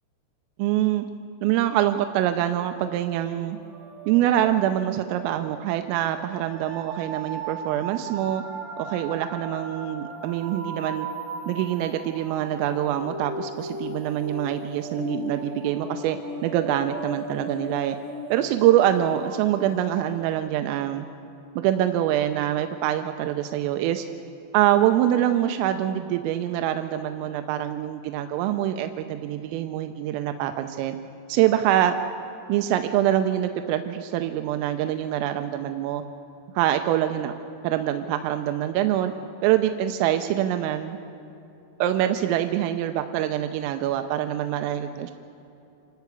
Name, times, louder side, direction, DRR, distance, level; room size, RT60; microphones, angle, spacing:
voice 1, 0.6-1.1 1.4-3.6 4.1-8.4 8.8-11.1 11.5-18.0 18.3-21.1 21.6-24.1 24.5-31.0 31.3-31.9 32.5-36.0 36.6-37.3 37.6-39.1 39.4-41.0 41.8-45.1, right 12 dB, 90° right, 7 dB, 3.4 m, -24 dB
sound 1, 3.5-20.3, right 1 dB, 55° right, 6.0 m, -37 dB
27.5 x 13.0 x 8.3 m, 2.8 s
omnidirectional pair, 5.8 m